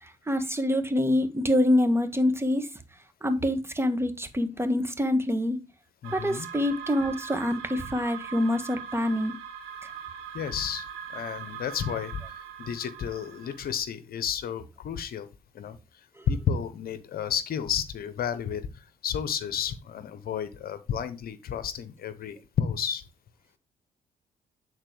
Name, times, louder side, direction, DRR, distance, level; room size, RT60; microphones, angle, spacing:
voice 1, 0.0-2.7 3.2-5.6 6.1-9.3, left 1 dB, 15° right, 1.6 m, -26 dB
voice 2, 6.0-6.5 10.3-10.9 11.1-15.3 15.5-15.8 16.3-23.0, left 8 dB, 65° left, 0.9 m, -32 dB
sound 1, 6.0-13.8, right 8 dB, 90° right, 1.2 m, -41 dB
9.0 x 4.1 x 4.8 m
hypercardioid pair, 45°, 17 cm